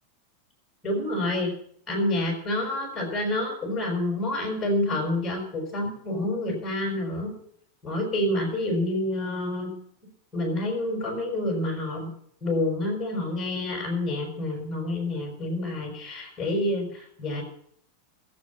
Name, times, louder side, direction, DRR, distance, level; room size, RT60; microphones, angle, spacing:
voice 1, 0.8-1.5 1.9-7.3 7.8-9.7 10.3-12.1 12.4-17.4, left 1 dB, 10° left, 1 dB, 5.4 m, -28 dB
16.0 x 7.9 x 7.2 m, 0.65 s
supercardioid pair, 165°, 0 cm